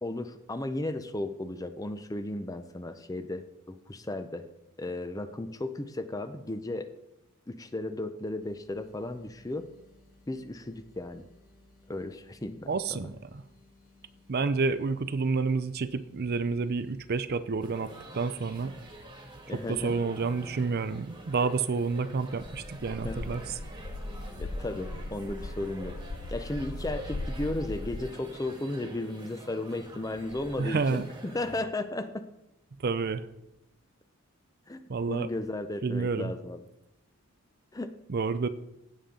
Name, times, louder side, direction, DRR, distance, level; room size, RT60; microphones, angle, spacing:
voice 1, 0.0-4.5 4.8-6.9 7.5-9.7 10.3-11.2 11.9-13.1 19.5-20.0 23.0-23.3 24.4-26.0 26.3-32.3 34.7-34.8 35.1-36.6 37.7-37.9, left 2 dB, 15° left, 10 dB, 0.5 m, -35 dB
sound 1, 8.4-26.4, left 2 dB, 35° left, 2.4 m, -60 dB
voice 2, 12.7-13.4 14.3-18.8 19.5-23.4 30.6-31.1 32.8-33.3 34.9-35.3 35.8-36.3 38.1-38.5, right 4 dB, 45° right, 13 dB, 0.5 m, -29 dB
sound 2, 17.6-31.6, right 1 dB, 20° right, 1.5 m, -47 dB
sound 3, 22.4-28.0, left 2 dB, 75° left, 0.7 m, -38 dB
16.0 x 7.0 x 3.8 m, 0.89 s
head